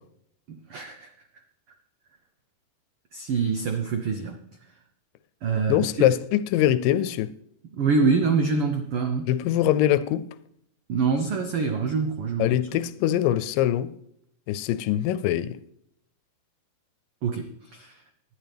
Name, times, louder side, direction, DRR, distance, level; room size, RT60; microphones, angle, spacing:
voice 1, 0.5-1.1 3.1-4.4 5.4-6.1 7.7-9.3 10.9-12.6 17.2-18.0, right 4 dB, 85° right, 1.2 m, -25 dB
voice 2, 5.7-7.3 9.3-10.3 12.4-13.9 14.5-15.6, left 12 dB, 85° left, 2.3 m, -23 dB
19.5 x 11.5 x 3.4 m
omnidirectional pair, 3.9 m